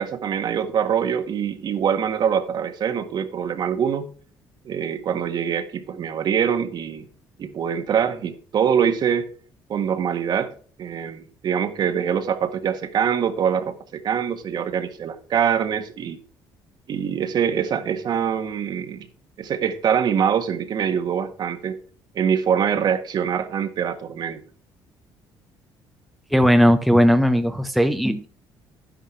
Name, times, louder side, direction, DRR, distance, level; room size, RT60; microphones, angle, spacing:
voice 1, 0.0-4.1 4.6-7.1 7.4-9.3 9.7-10.5 10.8-16.2 16.9-19.1 19.4-21.8 22.1-24.4, right 8 dB, 55° right, 1.7 m, -24 dB
voice 2, 26.3-28.3, equal, ahead, 0.9 m, -17 dB
11.0 x 10.5 x 3.4 m
cardioid pair, 95°, 9 cm